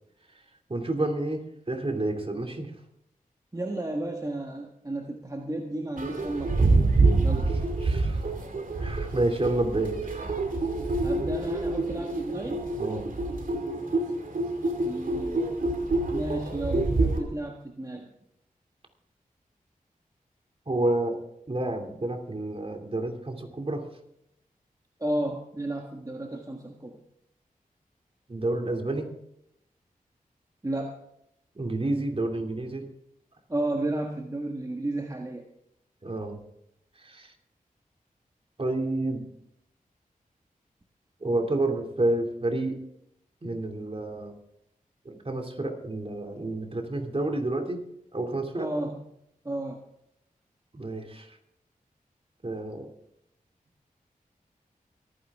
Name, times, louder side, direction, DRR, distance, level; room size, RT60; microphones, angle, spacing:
voice 1, 0.7-2.7 7.5-8.2 8.8-10.0 12.8-13.1 20.7-21.2 21.5-23.8 28.3-29.1 31.5-32.8 36.0-36.4 37.0-37.3 38.6-39.3 41.2-42.8 43.4-44.3 45.0-47.8 48.1-48.7 50.7-51.4 52.4-52.9, right 2 dB, 40° right, 3 dB, 2.7 m, -29 dB
voice 2, 3.5-6.9 7.2-7.5 11.0-12.6 14.8-15.4 16.1-18.1 25.0-27.0 30.6-31.0 33.5-35.5 48.5-49.0 49.4-49.8, right 1 dB, 25° right, 2 dB, 1.6 m, -33 dB
sound 1, 6.0-17.2, right 2 dB, 65° right, 2.5 m, -26 dB
23.5 x 9.7 x 3.6 m, 0.79 s
cardioid pair, 55°, 15 cm